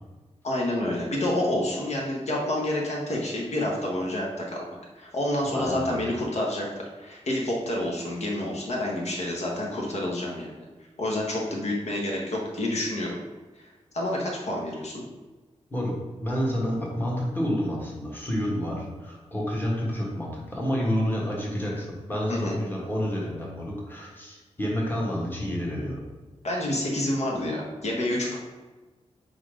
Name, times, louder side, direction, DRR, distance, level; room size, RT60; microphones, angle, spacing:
voice 1, 0.4-4.6 5.0-10.6 11.0-13.2 13.6-13.7 13.9-15.0 22.3-22.5 26.4-28.4, left 1 dB, 70° left, -2 dB, 1.2 m, -28 dB
voice 2, 5.4-6.0 15.7-26.0, equal, 15° left, -4 dB, 1.4 m, -29 dB
4.8 x 4.1 x 5.0 m, 1.2 s
wide cardioid pair, 160°, 12 cm